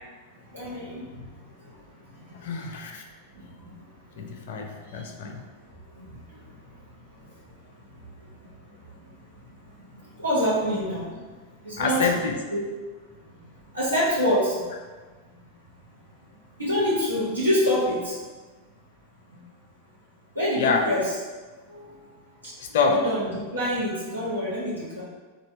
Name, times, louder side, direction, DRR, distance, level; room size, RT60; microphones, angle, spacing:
voice 1, 0.5-1.0 2.3-2.4 3.6-3.7 4.9-5.0 5.9-6.1 8.4-8.5 10.2-11.1 11.6-12.6 13.7-14.7 16.6-18.1 19.3-19.4 20.3-21.2 21.7-22.0 22.4-22.5 22.9-25.0, equal, 80° right, -9 dB, 1.5 m, -26 dB
voice 2, 2.4-3.0 4.2-5.4 11.8-12.3 20.6-20.8 22.7-23.0, left 5 dB, 55° left, 3 dB, 0.5 m, -26 dB
3.3 x 2.8 x 4.2 m, 1.3 s
figure-of-eight pair, 90°, 0 cm